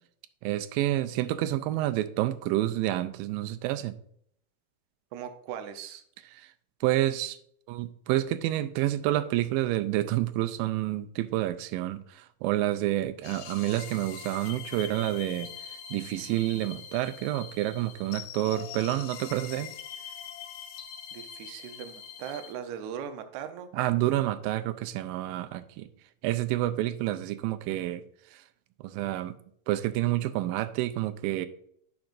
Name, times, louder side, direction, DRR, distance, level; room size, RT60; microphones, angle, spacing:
voice 1, 0.4-4.0 6.4-6.5 6.8-7.4 7.7-15.5 15.9-19.7 23.7-25.9 26.2-28.0 28.3-28.4 28.8-29.3 29.7-31.5, right 15 dB, 90° right, 2.3 m, -29 dB
voice 2, 5.1-6.0 21.1-23.7, right 8 dB, 75° right, 1.8 m, -39 dB
sound 1, 13.2-22.5, left 9 dB, 75° left, 1.9 m, -43 dB
10.5 x 5.4 x 2.5 m
omnidirectional pair, 4.0 m